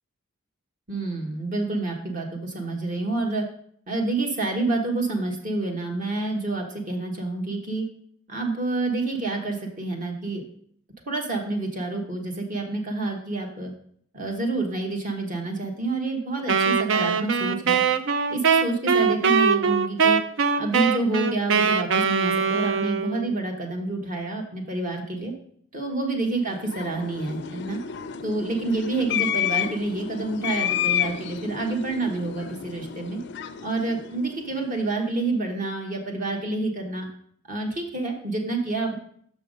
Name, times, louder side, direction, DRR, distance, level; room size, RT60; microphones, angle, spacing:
voice 1, 0.9-3.4 3.9-7.8 8.3-10.4 11.1-13.7 14.1-17.8 18.3-20.2 20.6-25.3 25.7-27.8 28.2-33.2 33.6-37.1 37.5-38.9, right 2 dB, 40° right, 2 dB, 1.2 m, -28 dB
Wind instrument woodwind instrument, 16.5-23.3, right 6 dB, 65° right, 0.5 m, -22 dB
sound 1, 26.4-34.9, left 9 dB, 55° left, 0.4 m, -31 dB
6.3 x 5.6 x 5.1 m, 0.63 s
head